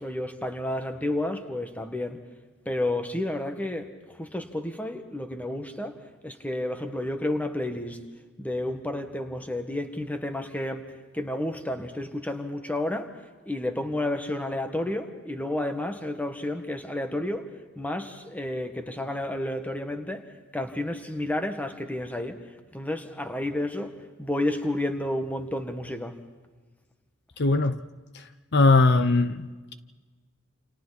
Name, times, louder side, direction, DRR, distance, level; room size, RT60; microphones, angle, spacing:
voice 1, 0.0-2.2 2.6-6.0 6.2-8.0 8.4-10.8 11.1-13.1 13.4-17.5 17.7-22.4 22.7-26.2, left 1 dB, 10° left, 1.7 m, -31 dB
voice 2, 27.4-27.8 28.1-28.2 28.5-29.7, left 3 dB, 55° left, 0.9 m, -21 dB
29.0 x 28.0 x 4.2 m
head